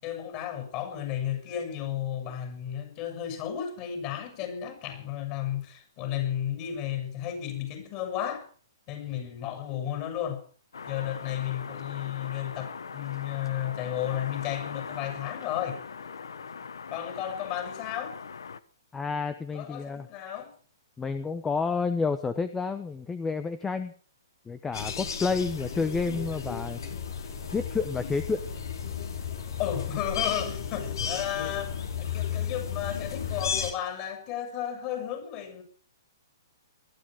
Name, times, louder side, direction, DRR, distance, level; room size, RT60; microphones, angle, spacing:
voice 1, 0.0-8.5 8.9-10.4 10.9-15.8 16.9-18.2 19.5-20.5 29.6-35.6, left 10 dB, 35° left, 7.0 m, -33 dB
sound 1, 10.7-18.6, left 5 dB, 90° left, 1.2 m, -40 dB
voice 2, 18.9-20.1 21.0-23.9 24.5-26.8 27.5-28.4, left 4 dB, 10° left, 0.9 m, -30 dB
sound 2, 24.7-33.7, left 7 dB, 70° left, 4.7 m, -33 dB
20.5 x 13.5 x 5.0 m
hypercardioid pair, 150°, 2 cm